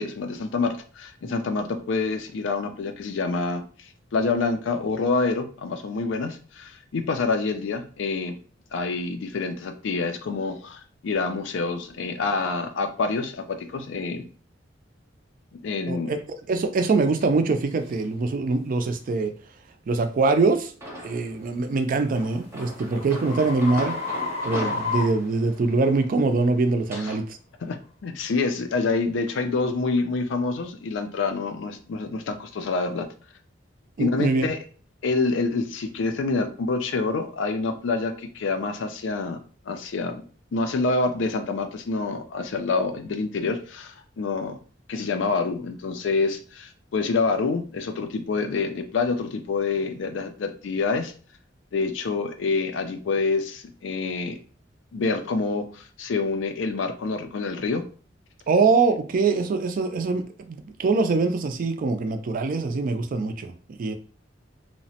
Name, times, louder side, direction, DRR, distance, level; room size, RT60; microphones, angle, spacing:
voice 1, 0.0-8.3 8.7-14.2 15.5-16.1 26.9-27.1 27.6-33.1 34.0-34.6 35.0-39.4 39.7-40.2 40.5-44.6 44.9-51.1 51.7-54.4 54.9-57.8, left 4 dB, 75° left, 0.4 m, -27 dB
voice 2, 15.9-16.2 16.5-19.3 19.9-20.7 21.0-24.0 24.4-27.4 34.0-34.5 58.5-63.5 63.8-63.9, right 3 dB, 45° right, 0.3 m, -23 dB
sound 1, 17.2-17.3 17.9-18.1 18.7-18.9 21.5-26.0, left 4 dB, 35° left, 0.6 m, -33 dB
sound 2, 20.8-21.4 22.1-27.2, equal, 15° right, 0.7 m, -38 dB
2.8 x 2.0 x 2.7 m
head